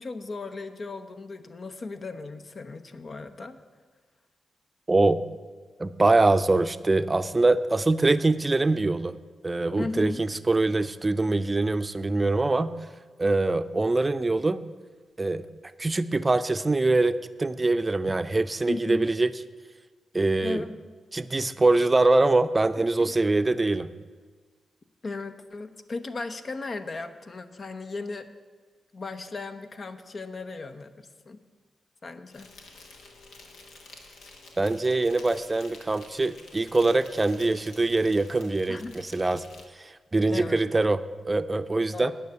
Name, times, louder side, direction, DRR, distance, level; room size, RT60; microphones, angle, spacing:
voice 1, 0.0-3.6 9.8-10.2 18.7-19.0 20.4-20.8 23.0-23.1 25.0-28.3 28.9-31.4 32.0-32.5 38.7-38.9 40.3-40.6 41.9-42.1, left 3 dB, 50° left, 9 dB, 0.7 m, -36 dB
voice 2, 4.9-5.2 5.8-9.1 9.4-12.7 13.2-14.6 15.2-15.4 15.8-19.3 20.1-20.6 21.1-23.9 34.6-39.4 39.8-41.0 41.3-42.1, right 2 dB, 30° right, 12 dB, 0.5 m, -23 dB
Insect, 32.3-39.6, left 3 dB, 85° left, 1.2 m, -50 dB
9.3 x 5.8 x 8.3 m, 1.4 s
supercardioid pair, 45°, 0 cm